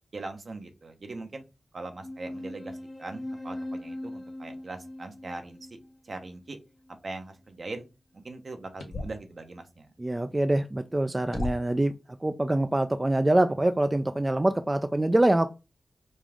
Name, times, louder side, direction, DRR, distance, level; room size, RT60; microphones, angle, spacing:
voice 1, 0.1-1.4 1.7-5.8 6.0-6.6 7.0-7.8 8.1-9.9, right 3 dB, 60° right, 6 dB, 0.8 m, -41 dB
sound 1, 2.0-7.0, left 1 dB, 20° left, 0.6 m, -40 dB
sound 2, 8.8-9.3 10.6-10.7 11.3-11.9, left 2 dB, 75° left, 0.9 m, -35 dB
voice 2, 10.0-11.9 12.2-15.5, right 1 dB, 25° right, 9 dB, 0.3 m, -24 dB
5.2 x 2.4 x 3.6 m, 0.28 s
cardioid pair, 45°, 0 cm